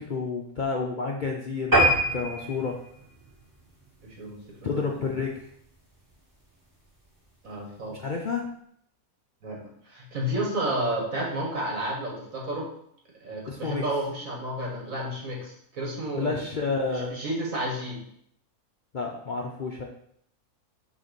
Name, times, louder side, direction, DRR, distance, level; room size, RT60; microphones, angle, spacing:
voice 1, 0.0-2.8 4.6-5.4 7.9-8.5 13.5-13.8 16.2-17.2 18.9-19.8, left 4 dB, 55° left, 0 dB, 0.5 m, -30 dB
sound 1, 1.7-4.5 4.9-5.1 5.6-5.7 6.0-6.1 6.3-6.4, right 1 dB, 15° right, 2.1 m, -25 dB
voice 2, 4.0-5.1 7.4-8.0 9.4-12.7 13.2-16.4 16.9-18.0, right 1 dB, 60° right, -2 dB, 2.0 m, -31 dB
6.4 x 3.5 x 5.2 m, 0.70 s
omnidirectional pair, 1.6 m